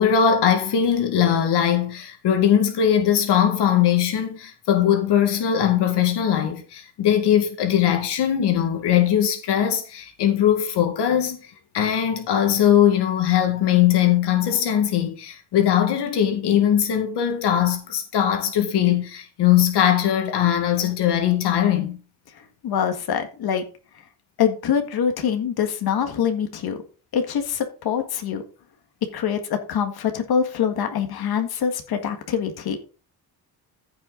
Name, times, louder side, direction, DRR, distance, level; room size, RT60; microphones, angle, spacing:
voice 1, 0.0-22.0, left 9 dB, 85° left, 1.9 m, -20 dB
voice 2, 22.4-23.7 24.4-26.8 27.1-28.4 29.0-32.8, left 8 dB, 65° left, 1.9 m, -24 dB
14.5 x 5.9 x 3.9 m
cardioid pair, 140°, 40 cm